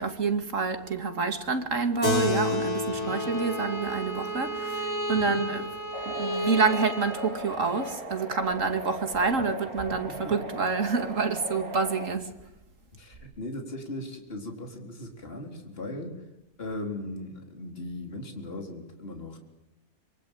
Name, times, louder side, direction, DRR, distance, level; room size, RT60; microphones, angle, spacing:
voice 1, 0.0-5.7 6.1-12.3, right 4 dB, 55° right, 2.9 m, -28 dB
Keyboard (musical), 2.0-6.9, left 3 dB, 80° left, 6.3 m, -32 dB
voice 2, 2.9-3.2 5.1-5.4 12.9-16.2 16.6-19.4, left 1 dB, 40° left, 4.3 m, -38 dB
Bowed string instrument, 3.0-7.9, right 1 dB, 10° left, 2.1 m, -34 dB
sound 1, 5.9-12.1, equal, 75° right, 3.7 m, -38 dB
26.0 x 23.5 x 9.0 m
omnidirectional pair, 1.6 m